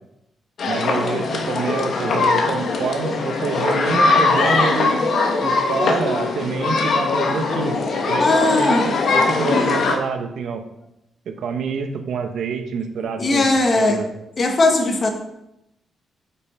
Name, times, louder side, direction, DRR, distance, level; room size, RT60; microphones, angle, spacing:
sound 1, 0.6-10.0, left 3 dB, 60° left, 1.3 m, -21 dB
voice 1, 0.7-5.0 5.4-7.8 8.1-10.6 11.3-13.5 13.8-14.1, right 5 dB, 75° right, 6 dB, 1.0 m, -27 dB
voice 2, 8.2-8.9 13.2-14.0 14.4-15.1, left 2 dB, 35° left, 4 dB, 1.3 m, -18 dB
8.8 x 5.5 x 4.4 m, 0.84 s
cardioid pair, 125°, 0 cm